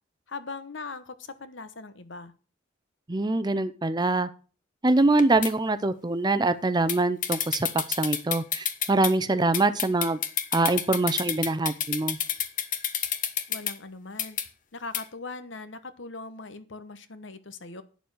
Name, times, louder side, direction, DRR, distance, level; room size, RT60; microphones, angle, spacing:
voice 1, 0.3-2.3 13.5-14.4 14.7-17.8, left 3 dB, 65° left, 12 dB, 1.1 m, -40 dB
voice 2, 3.1-4.3 4.8-7.7 8.0-10.2 10.5-12.2, right 2 dB, 20° right, 12 dB, 0.6 m, -24 dB
sound 1, 5.0-5.5 6.9-7.0 7.2-9.1 9.5-13.7 14.2-14.5 14.9-15.0, left 9 dB, 40° left, 1.1 m, -29 dB
9.3 x 7.0 x 6.3 m, 0.36 s
head